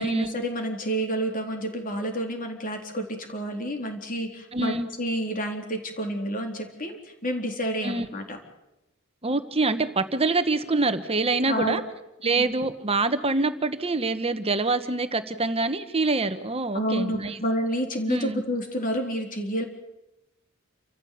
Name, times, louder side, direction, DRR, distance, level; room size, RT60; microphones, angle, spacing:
voice 1, 0.0-8.4 11.5-11.8 12.2-12.4 16.7-19.7, equal, 40° left, 4 dB, 4.0 m, -29 dB
voice 2, 4.5-4.9 7.8-8.1 9.2-11.8 12.2-17.4 18.1-18.4, right 3 dB, 30° right, 10 dB, 1.2 m, -25 dB
29.0 x 14.5 x 8.6 m, 0.92 s
head